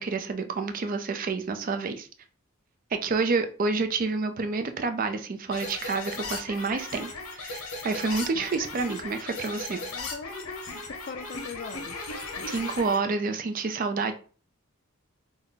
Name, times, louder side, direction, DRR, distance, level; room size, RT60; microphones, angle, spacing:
voice 1, 0.0-2.1 2.9-7.1 7.4-9.8 12.5-14.1, right 4 dB, 40° right, 0.4 m, -28 dB
sound 1, 5.5-13.0, left 3 dB, 80° left, 0.9 m, -37 dB
voice 2, 9.8-12.5 12.8-13.0, left 5 dB, 40° left, 0.3 m, -41 dB
3.4 x 2.1 x 3.9 m
head